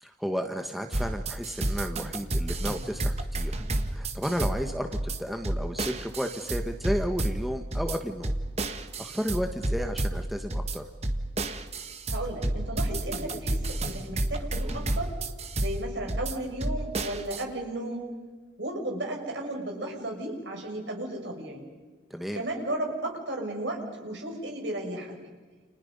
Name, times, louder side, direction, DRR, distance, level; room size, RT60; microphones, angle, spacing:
voice 1, 0.0-3.6 3.9-8.3 9.0-10.8 22.1-22.5, equal, ahead, 5 dB, 1.3 m, -33 dB
sound 1, 0.9-17.4, right 1 dB, 35° right, 1.5 m, -31 dB
voice 2, 12.1-15.1 15.5-18.1 18.6-21.6 22.3-25.1, right 1 dB, 65° right, 1 dB, 6.3 m, -34 dB
30.0 x 29.0 x 5.4 m, 1.3 s
head